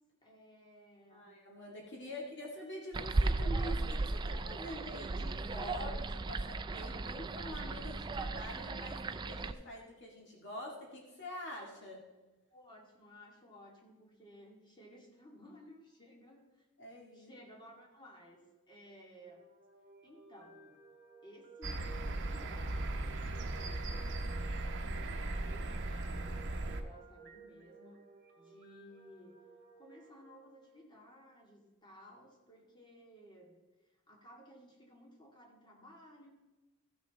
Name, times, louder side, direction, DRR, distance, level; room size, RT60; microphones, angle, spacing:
voice 1, 0.2-1.3 2.0-2.5 12.5-16.7 17.1-19.4 20.0-20.7 21.2-24.2 24.5-28.0 28.4-29.4 29.8-36.3, equal, 20° left, -1 dB, 2.0 m, -57 dB
voice 2, 1.1-12.0 16.8-17.3, left 1 dB, 55° left, -2 dB, 2.0 m, -46 dB
sound 1, 2.9-9.5, right 2 dB, 20° right, 0.3 m, -36 dB
sound 2, 19.2-31.3, right 3 dB, 40° right, 2.2 m, -58 dB
sound 3, 21.6-26.8, right 2 dB, 55° right, 0.9 m, -37 dB
14.5 x 6.4 x 4.1 m, 1.1 s
head